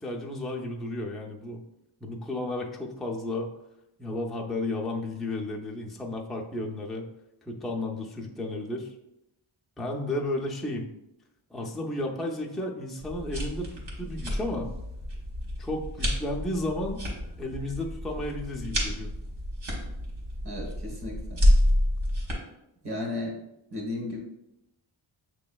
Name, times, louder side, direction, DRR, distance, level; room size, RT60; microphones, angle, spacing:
voice 1, 0.0-1.6 2.0-3.5 4.0-7.1 7.5-8.9 9.8-10.9 11.5-14.7 15.6-17.0 17.4-19.1, left 1 dB, ahead, 0 dB, 0.3 m, -33 dB
sound 1, 13.0-22.3, equal, 70° right, 1.4 m, -29 dB
voice 2, 20.4-21.4 22.8-23.4 23.7-24.2, left 2 dB, 55° right, -2 dB, 1.4 m, -34 dB
6.6 x 3.0 x 2.3 m, 0.85 s
wide cardioid pair, 130°, 48 cm